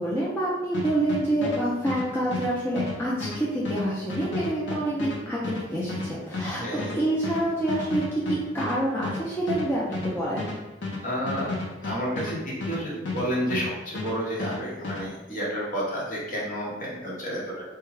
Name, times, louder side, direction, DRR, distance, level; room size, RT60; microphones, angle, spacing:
voice 1, 0.0-5.5 5.7-8.0 8.3-10.6, right 1 dB, 15° left, -7 dB, 0.5 m, -27 dB
sound 1, 0.7-13.7 13.9-15.0, left 3 dB, 70° left, 0.8 m, -32 dB
voice 2, 6.6-7.0 11.0-11.6 11.8-17.6, equal, 45° left, -5 dB, 1.0 m, -30 dB
3.5 x 2.2 x 3.2 m, 1.1 s
head